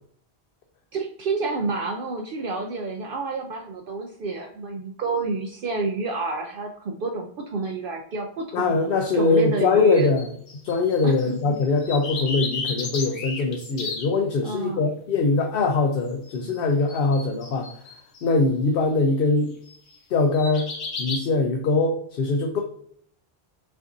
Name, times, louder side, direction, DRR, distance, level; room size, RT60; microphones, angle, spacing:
voice 1, 0.9-8.7 9.1-10.1 11.0-11.6 14.4-14.8, right 3 dB, 60° right, 2 dB, 0.7 m, -29 dB
voice 2, 8.5-10.3 10.6-17.7 18.2-19.5 20.1-20.7 21.0-22.6, left 3 dB, 65° left, 3 dB, 0.8 m, -22 dB
sound 1, 9.9-11.3 11.6-14.1 16.3-16.6 16.9-18.2 19.6-20.0 20.3-21.2, left 4 dB, 85° left, 1.2 m, -33 dB
5.7 x 2.6 x 2.5 m, 0.64 s
omnidirectional pair, 1.1 m